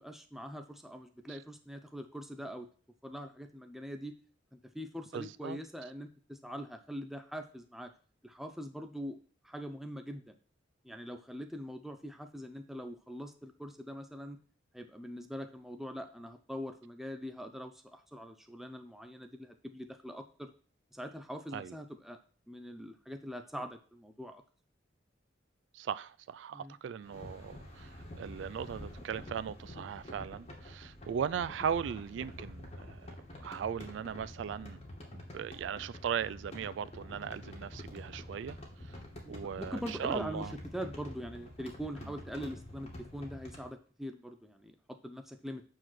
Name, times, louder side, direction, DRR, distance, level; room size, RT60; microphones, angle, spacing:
voice 1, 0.0-2.7 3.0-4.1 4.5-7.9 8.2-9.2 9.4-10.3 10.8-14.4 14.7-20.5 20.9-22.2 22.5-24.4 26.5-26.8 39.1-45.6, equal, ahead, 0.6 m, -43 dB
voice 2, 5.1-5.6 21.5-21.7 25.7-34.8 35.3-39.0 39.3-40.5, right 8 dB, 75° right, 0.3 m, -38 dB
sound 1, 27.0-43.7, left 1 dB, 35° left, 2.5 m, -48 dB
7.8 x 4.8 x 6.1 m
head